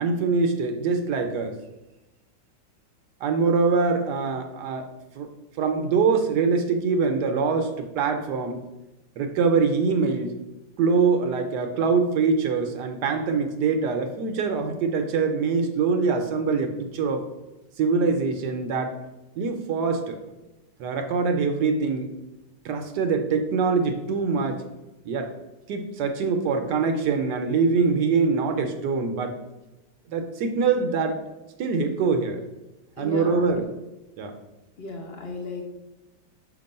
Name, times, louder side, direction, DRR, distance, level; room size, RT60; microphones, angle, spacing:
voice 1, 0.0-1.5 3.2-4.9 5.1-5.3 5.6-8.6 9.2-10.3 10.8-17.2 17.8-18.9 19.4-20.2 20.8-22.1 22.6-24.6 25.1-25.3 25.7-29.4 30.1-31.2 31.6-32.4 33.0-33.7 34.2-34.3, right 5 dB, 70° right, 5 dB, 1.2 m, -24 dB
voice 2, 33.0-33.6 34.8-35.7, left 2 dB, 45° left, 1 dB, 0.8 m, -35 dB
6.6 x 3.0 x 5.2 m, 1.0 s
omnidirectional pair, 2.0 m